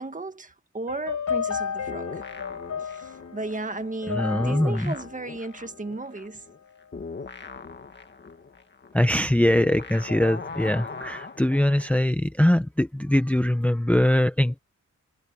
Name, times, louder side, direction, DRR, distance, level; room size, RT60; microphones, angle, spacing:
voice 1, 0.0-2.2 2.8-6.4, right 2 dB, 25° right, 1.6 m, -35 dB
sound 1, 0.9-6.2, left 7 dB, 75° left, 5.1 m, -33 dB
sound 2, 1.9-4.1 4.4-12.0, left 4 dB, 40° left, 1.8 m, -39 dB
voice 2, 4.1-4.9 8.9-14.6, left 1 dB, 5° left, 0.7 m, -22 dB
wide cardioid pair, 145°, 29 cm